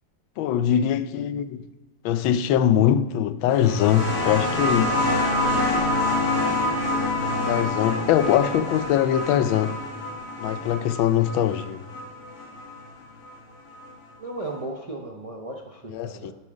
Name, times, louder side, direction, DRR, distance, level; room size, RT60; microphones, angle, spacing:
voice 1, 0.4-1.7 2.0-5.0 7.5-9.8 10.4-11.8 15.9-16.3, left 10 dB, 90° left, 1.4 m, -22 dB
sound 1, 3.5-12.8 13.9-14.0, left 2 dB, 50° left, 2.4 m, -26 dB
voice 2, 14.2-16.3, right 2 dB, 70° right, 0.3 m, -35 dB
13.0 x 7.4 x 5.1 m
omnidirectional pair, 2.1 m